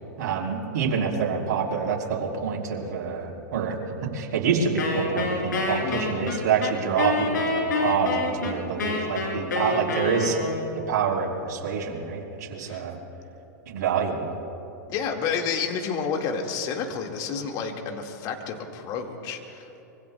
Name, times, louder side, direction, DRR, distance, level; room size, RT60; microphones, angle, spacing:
voice 1, 0.2-3.8 4.1-10.4 10.7-13.0 13.7-14.3, right 6 dB, 60° right, -2 dB, 3.7 m, -27 dB
Wind instrument woodwind instrument, 4.8-10.8, left 3 dB, 80° left, 3.6 m, -27 dB
voice 2, 14.9-19.8, left 6 dB, 40° left, 3 dB, 2.0 m, -30 dB
25.0 x 24.0 x 2.3 m, 3.0 s
hypercardioid pair, 110°, 10 cm